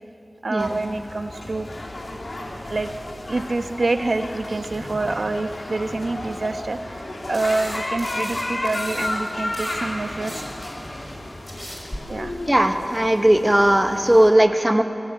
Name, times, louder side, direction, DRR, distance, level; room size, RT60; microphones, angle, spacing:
voice 1, 0.4-1.7 2.7-2.9 3.3-7.0 7.3-10.3 12.1-12.3, right 2 dB, 80° right, 7 dB, 1.1 m, -26 dB
sound 1, 0.6-14.3, left 1 dB, 75° left, 3.1 m, -33 dB
sound 2, 7.3-9.1 9.4-12.0, equal, 20° left, 5.5 m, -37 dB
voice 2, 12.5-14.8, right 1 dB, 20° right, 5 dB, 1.5 m, -17 dB
21.0 x 16.5 x 8.8 m, 2.7 s
wide cardioid pair, 65°, 0 cm